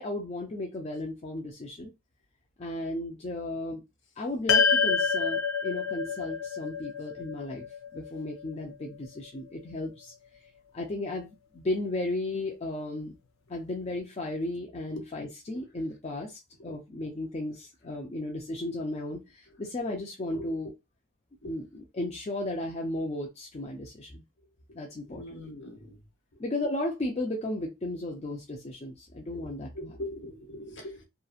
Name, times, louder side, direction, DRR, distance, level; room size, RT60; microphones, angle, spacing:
voice 1, 0.0-1.9 2.6-3.8 4.2-7.7 7.9-10.1 10.7-13.1 13.5-20.7 21.4-24.2 24.7-25.4 26.4-30.0, left 1 dB, 30° left, 0.4 m, -35 dB
sound 1, 4.5-9.0, left 5 dB, 85° left, 0.6 m, -28 dB
voice 2, 25.1-26.0 29.3-29.5 29.7-31.1, left 1 dB, 60° left, 0.9 m, -41 dB
2.8 x 2.4 x 2.4 m
head